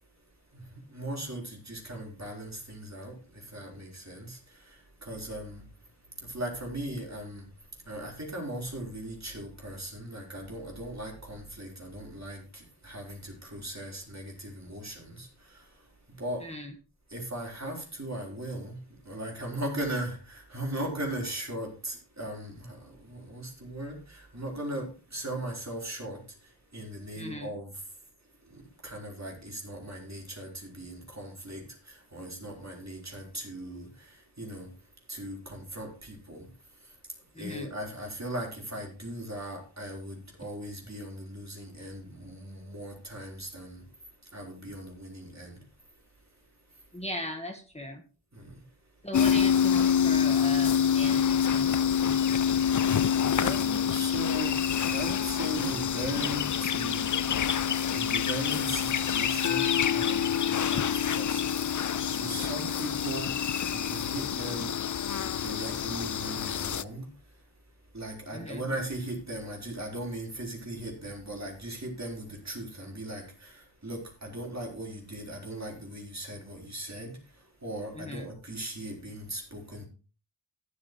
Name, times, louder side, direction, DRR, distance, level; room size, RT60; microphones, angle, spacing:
voice 1, 0.5-5.6 6.2-7.5 7.9-15.6 16.2-16.4 17.1-18.8 19.0-26.2 26.7-27.7 28.5-34.7 35.1-36.5 37.4-43.8 44.3-45.6 48.3-48.6 53.4-54.6 54.9-57.5 57.8-61.6 62.1-64.8 65.1-67.1 67.9-77.2 77.6-79.9, right 1 dB, 40° right, 4.1 m, -38 dB
voice 2, 16.4-16.7 27.2-27.5 37.4-37.7 46.9-48.0 49.0-52.4 68.3-68.6 78.0-78.3, equal, 15° left, 1.6 m, -38 dB
sound 1, 49.1-66.8, left 8 dB, 45° left, 0.4 m, -27 dB
14.0 x 8.5 x 3.1 m
wide cardioid pair, 55°, 42 cm